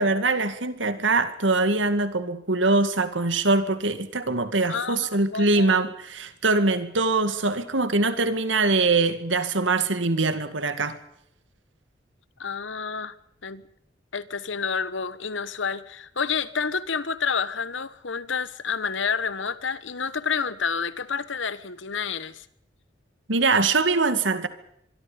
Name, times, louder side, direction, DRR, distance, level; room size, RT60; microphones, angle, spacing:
voice 1, 0.0-11.0 23.3-24.5, right 3 dB, 85° right, 2.2 m, -23 dB
voice 2, 4.7-5.8 12.4-13.1 13.4-13.6 14.1-22.5, left 5 dB, 85° left, 1.3 m, -29 dB
24.5 x 24.0 x 5.2 m
head